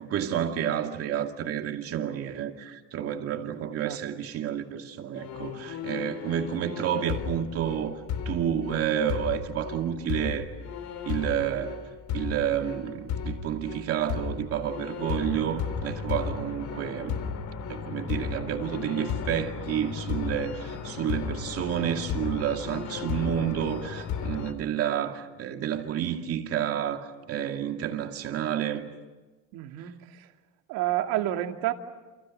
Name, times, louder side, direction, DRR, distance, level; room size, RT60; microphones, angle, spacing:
voice 1, 0.0-8.0 8.3-10.5 11.1-17.1 17.7-28.9, right 9 dB, 40° right, 2.5 m, -30 dB
sound 1, 5.2-24.5, left 6 dB, 55° left, 3.2 m, -35 dB
voice 2, 29.5-30.3 30.7-31.7, right 13 dB, 75° right, 2.5 m, -29 dB
30.0 x 28.5 x 6.6 m
cardioid pair, 175°, 36 cm